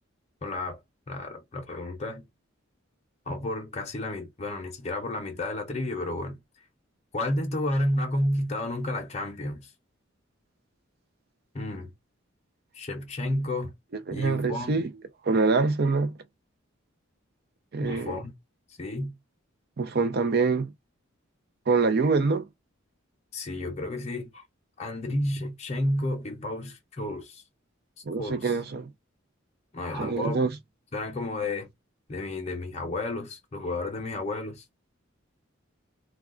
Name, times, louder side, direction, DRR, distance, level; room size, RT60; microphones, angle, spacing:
voice 1, 0.4-0.8 1.1-2.3 3.3-6.4 7.1-9.7 11.5-11.9 12.7-13.7 14.1-14.8 17.8-18.3 18.8-19.2 23.3-24.4 24.8-27.4 28.2-28.6 29.7-30.4 30.9-31.7 32.1-34.6, left 1 dB, 35° left, 0.7 m, -31 dB
voice 2, 14.1-14.9 15.2-16.1 17.7-18.2 19.8-20.7 21.7-22.4 28.1-28.9 30.0-30.5, right 4 dB, 50° right, 0.5 m, -25 dB
2.3 x 2.3 x 3.6 m
head